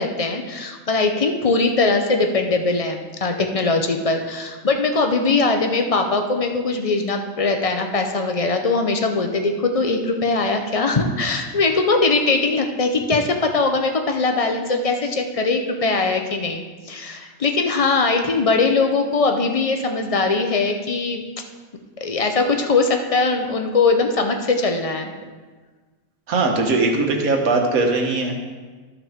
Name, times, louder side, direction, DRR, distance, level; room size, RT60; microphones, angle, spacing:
voice 1, 0.0-21.2 22.0-25.1, left 3 dB, 40° left, 5 dB, 0.5 m, -21 dB
voice 2, 26.3-28.4, right 3 dB, 80° right, 2 dB, 1.6 m, -20 dB
13.0 x 5.8 x 3.5 m, 1.4 s
omnidirectional pair, 1.5 m